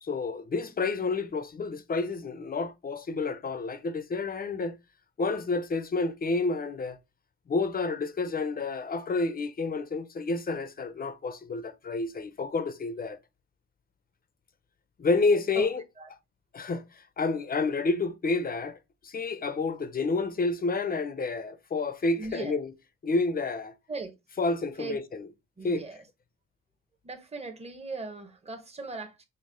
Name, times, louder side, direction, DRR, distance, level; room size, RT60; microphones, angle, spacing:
voice 1, 0.0-4.7 5.2-7.0 7.5-13.2 15.0-15.8 16.5-18.8 19.0-22.7 23.0-23.7 24.4-25.3 25.6-25.8, left 3 dB, 30° left, 0.6 m, -29 dB
voice 2, 22.2-22.6 23.9-24.1 24.8-25.0 25.6-26.0 27.0-29.2, right 4 dB, 20° right, 1.0 m, -38 dB
5.3 x 2.0 x 3.6 m
cardioid pair, 90°, 30 cm